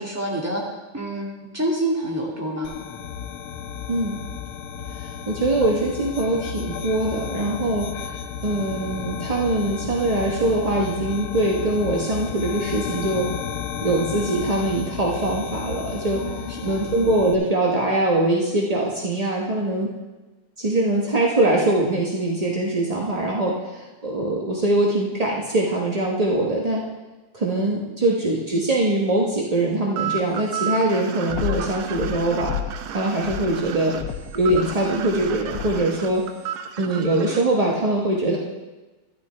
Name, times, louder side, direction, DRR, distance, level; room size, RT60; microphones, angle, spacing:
voice 1, 0.0-2.7 16.2-16.8, right 1 dB, 5° right, -4 dB, 2.1 m, -28 dB
sound 1, 2.6-17.3, left 8 dB, 85° left, 1.7 m, -33 dB
voice 2, 4.9-8.2 8.4-13.3 13.8-16.2 16.6-19.9 20.6-26.8 27.3-32.5 32.9-33.9 34.3-36.2 36.8-38.4, right 2 dB, 35° right, -3 dB, 0.6 m, -22 dB
sound 2, 30.0-37.4, right 9 dB, 75° right, 1.5 m, -32 dB
sound 3, 31.3-32.9 33.2-36.0, left 10 dB, 65° left, 1.2 m, -32 dB
12.5 x 11.5 x 3.4 m, 1.1 s
omnidirectional pair, 2.4 m